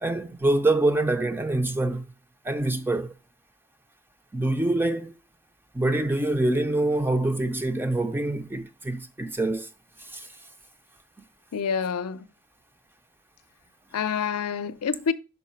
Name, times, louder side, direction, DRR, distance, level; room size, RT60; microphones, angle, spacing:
voice 1, 0.0-2.0 2.4-3.1 4.3-5.1 5.7-9.7 10.1-10.3, right 2 dB, 10° right, 0.4 m, -25 dB
voice 2, 11.5-12.3 13.9-15.1, left 6 dB, 80° left, 0.5 m, -27 dB
5.4 x 4.9 x 5.6 m
head